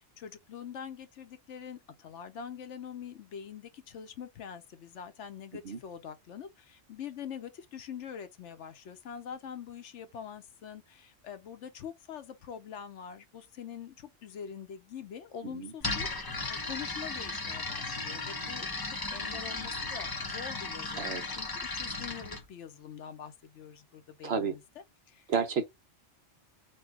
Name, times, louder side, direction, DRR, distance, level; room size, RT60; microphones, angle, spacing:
voice 1, 0.0-24.6 25.1-25.3, left 8 dB, 70° left, 1.0 m, -44 dB
sound 1, 15.8-22.4, left 3 dB, 20° left, 0.7 m, -36 dB
voice 2, 24.2-24.6 25.3-25.6, right 6 dB, 60° right, 1.0 m, -30 dB
4.3 x 2.3 x 4.6 m
omnidirectional pair, 1.3 m